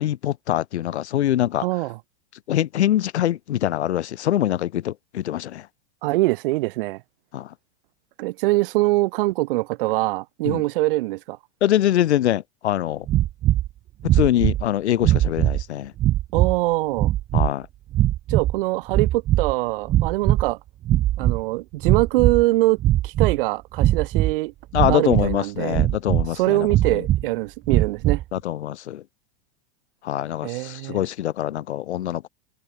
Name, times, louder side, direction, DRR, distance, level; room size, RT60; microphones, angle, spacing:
voice 1, 0.0-1.7 2.5-5.7 7.3-7.5 10.4-10.6 11.6-13.1 14.0-15.9 17.3-17.7 24.7-27.0 28.3-29.0 30.0-32.3, left 12 dB, 80° left, 3.1 m, -24 dB
voice 2, 1.6-2.0 6.0-7.0 8.2-11.4 16.3-17.1 18.3-20.6 21.2-22.8 23.0-24.5 24.9-25.8 26.3-28.2 30.4-31.0, right 20 dB, 55° right, 3.5 m, -23 dB
sound 1, 13.1-13.7 14.0-14.6 15.0-15.6 16.0-16.6 16.9-17.5 17.9-18.6 18.9-19.5 19.8-20.5 20.8-21.4 21.8-22.4 22.8-23.4 23.8-24.3 24.7-25.4 25.7-26.3 26.7-27.2 27.7-28.2, right 14 dB, 15° right, 0.4 m, -20 dB
supercardioid pair, 155°, 33 cm